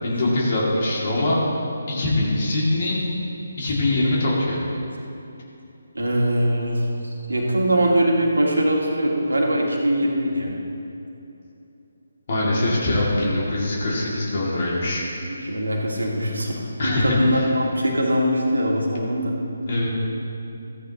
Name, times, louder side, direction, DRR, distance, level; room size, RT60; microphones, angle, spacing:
voice 1, 0.0-1.4 1.9-3.0 3.6-4.6 12.3-15.0 16.8-17.5 19.7-19.9, left 1 dB, 45° left, -5 dB, 2.3 m, -22 dB
voice 2, 5.9-10.5 15.3-16.5 16.8-19.3, equal, 75° right, -1 dB, 1.8 m, -22 dB
14.0 x 9.8 x 2.9 m, 2.8 s
figure-of-eight pair, 145°, 0 cm